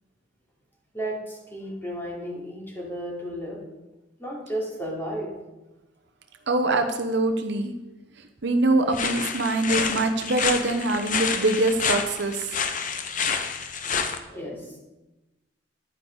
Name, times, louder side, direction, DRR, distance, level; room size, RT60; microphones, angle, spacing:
voice 1, 0.9-3.6 4.2-5.3 14.3-14.8, equal, 10° left, -4 dB, 3.1 m, -33 dB
voice 2, 6.5-7.7 8.4-12.5, right 2 dB, 65° right, 6 dB, 0.9 m, -23 dB
sound 1, 8.9-14.2, left 6 dB, 45° left, 0.8 m, -28 dB
11.0 x 9.7 x 4.0 m, 1.0 s
head